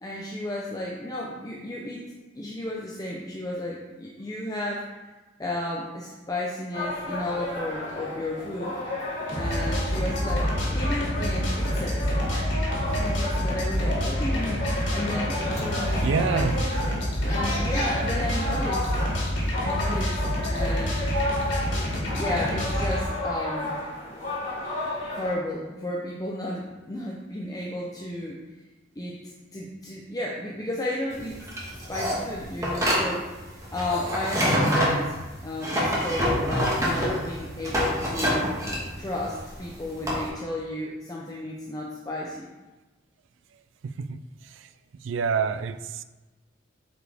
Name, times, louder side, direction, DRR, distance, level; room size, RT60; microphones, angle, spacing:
voice 1, 0.0-2.0 2.3-4.9 5.4-8.7 9.4-12.5 13.0-16.5 17.3-19.1 19.6-20.2 20.5-21.0 22.1-23.8 25.1-28.4 29.0-31.4 31.7-33.3 33.7-35.2 35.4-38.6 39.0-42.5, left 1 dB, 20° left, -3 dB, 0.6 m, -33 dB
sound 1, 6.7-25.3, left 1 dB, 40° left, 2.1 m, -32 dB
sound 2, 9.3-23.0, equal, 70° left, 2.3 m, -27 dB
voice 2, 16.0-16.7 43.8-44.7 45.0-46.0, right 5 dB, 80° right, 12 dB, 0.4 m, -28 dB
sound 3, 31.1-40.3, equal, 15° right, 1.4 m, -26 dB
7.9 x 4.8 x 3.5 m, 1.2 s
head